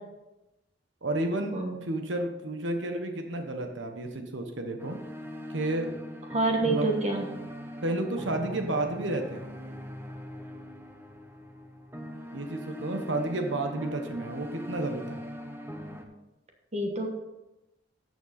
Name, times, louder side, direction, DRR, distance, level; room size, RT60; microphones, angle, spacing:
voice 1, 1.0-5.0 5.5-5.9 6.6-7.0 7.8-9.5 12.3-15.2, right 2 dB, 90° right, 5 dB, 1.2 m, -31 dB
sound 1, 4.8-16.0, equal, 15° right, 0.9 m, -41 dB
voice 2, 6.3-7.3 16.7-17.1, right 2 dB, 40° right, 2 dB, 1.3 m, -27 dB
13.0 x 6.9 x 4.2 m, 0.98 s
head